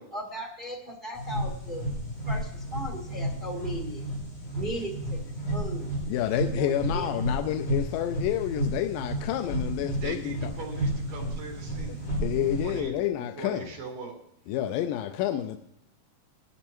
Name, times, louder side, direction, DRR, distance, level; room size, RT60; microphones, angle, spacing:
voice 1, 0.1-1.9 2.3-4.1 4.6-5.9 6.6-7.1, right 1 dB, 35° right, 0.7 m, -37 dB
sound 1, 1.2-12.8, right 1 dB, 40° left, 5.6 m, -32 dB
voice 2, 6.1-10.5 11.8-11.9 12.2-13.8 14.5-15.6, left 11 dB, 80° left, 2.2 m, -29 dB
voice 3, 10.0-12.0 12.6-13.0 13.4-14.1, right 3 dB, 75° right, 4.3 m, -39 dB
19.0 x 12.0 x 3.1 m
omnidirectional pair, 4.0 m